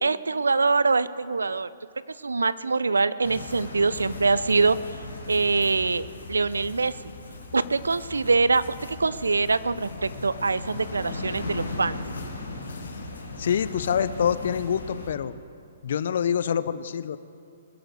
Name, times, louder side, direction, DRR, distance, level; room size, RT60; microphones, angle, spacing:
voice 1, 0.0-1.7 2.2-4.8 5.3-6.9 7.5-8.6 8.9-12.0, right 4 dB, 80° right, 16 dB, 0.6 m, -24 dB
sound 1, 3.2-15.1, left 3 dB, 85° left, 3.8 m, -37 dB
voice 2, 13.4-15.3 15.8-17.2, left 8 dB, 60° left, 15 dB, 0.7 m, -26 dB
22.0 x 7.9 x 6.7 m, 2.8 s
figure-of-eight pair, 125°, 0 cm